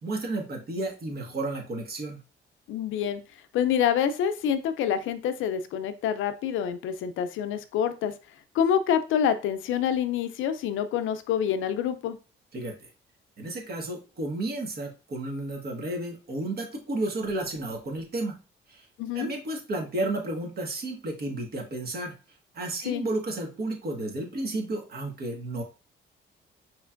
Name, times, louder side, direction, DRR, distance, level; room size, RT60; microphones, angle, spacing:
voice 1, 0.0-2.2 12.5-12.7 13.4-18.4 18.7-18.9 19.1-22.1 22.5-25.6, right 2 dB, 50° right, 2 dB, 1.5 m, -32 dB
voice 2, 2.7-3.2 3.5-8.1 8.5-12.2 19.0-19.3 22.9-23.0, left 8 dB, 85° left, 10 dB, 0.5 m, -27 dB
5.0 x 3.1 x 2.5 m, 0.32 s
cardioid pair, 90°, 20 cm